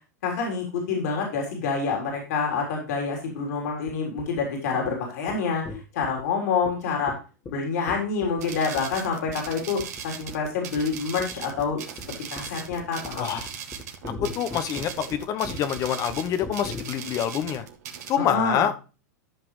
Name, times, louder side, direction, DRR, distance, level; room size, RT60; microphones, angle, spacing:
voice 1, 0.2-7.1 7.5-11.8 12.3-13.4 18.2-18.7, left 5 dB, 65° left, 1 dB, 3.7 m, -27 dB
sound 1, 3.9-4.4 4.9-5.0 5.3-5.4 5.7-6.2 6.7-6.8 7.1-7.2 7.5-7.6 7.9-8.4 8.8-9.0 9.3-9.5 9.8-10.0 10.3-10.5 10.8-16.8, left 2 dB, 20° left, 1.8 m, -38 dB
sound 2, 8.4-18.2, right 8 dB, 65° right, 2.0 m, -39 dB
voice 2, 13.2-13.5 14.2-17.6 18.1-18.8, left 9 dB, 40° left, 10 dB, 0.9 m, -26 dB
13.0 x 5.9 x 3.2 m, 0.33 s
hypercardioid pair, 105°, 9 cm